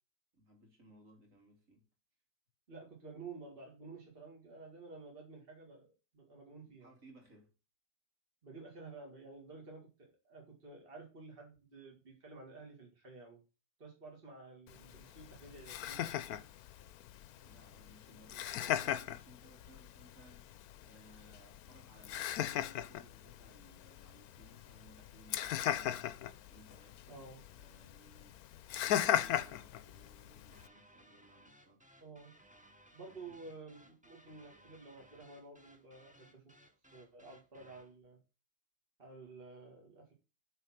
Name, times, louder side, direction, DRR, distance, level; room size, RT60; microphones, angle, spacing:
voice 1, 0.3-1.8 6.6-7.5 14.8-15.0 17.4-26.1 26.5-27.3 27.5-31.8 33.1-33.5, right 1 dB, 60° right, 3.2 m, -62 dB
voice 2, 2.7-5.9 6.1-6.9 8.4-13.4 13.8-16.1 27.1-27.4 32.0-32.3 32.9-36.5 36.9-38.2 39.0-40.1, right 3 dB, 40° right, 2.1 m, -52 dB
Laughter, 14.7-30.7, left 11 dB, 80° left, 1.1 m, -39 dB
sound 1, 30.5-38.0, right 1 dB, 5° right, 0.9 m, -63 dB
9.2 x 4.2 x 5.7 m
omnidirectional pair, 1.6 m